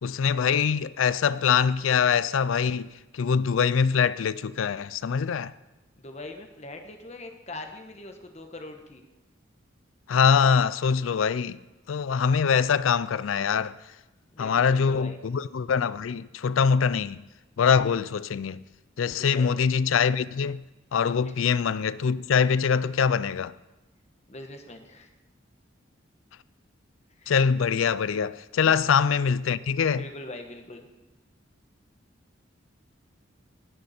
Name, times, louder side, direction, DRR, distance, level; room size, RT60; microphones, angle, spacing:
voice 1, 0.0-2.9 3.1-5.5 10.1-11.6 11.9-13.7 14.4-17.2 17.6-18.6 19.0-20.6 20.9-23.5 27.3-30.0, left 6 dB, 90° left, 0.4 m, -23 dB
voice 2, 6.0-9.1 14.3-15.2 19.0-19.5 21.2-21.3 24.3-25.1 27.2-27.3 28.6-28.8 29.9-30.9, left 2 dB, 35° left, 1.3 m, -42 dB
18.0 x 9.9 x 4.3 m
head